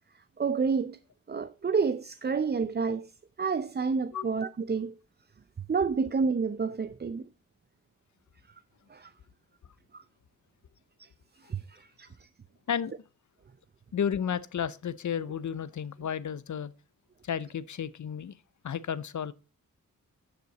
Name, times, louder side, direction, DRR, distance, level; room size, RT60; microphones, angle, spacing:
voice 1, 0.4-1.0 1.3-3.1 3.4-4.9 5.7-7.3 8.9-9.1 9.9-10.0 11.0-11.1 11.4-12.3, right 5 dB, 30° right, 0.5 m, -29 dB
voice 2, 13.9-16.7 17.2-18.4 18.6-19.3, left 8 dB, 60° left, 0.7 m, -32 dB
11.0 x 6.8 x 4.0 m
supercardioid pair, 40°, 34 cm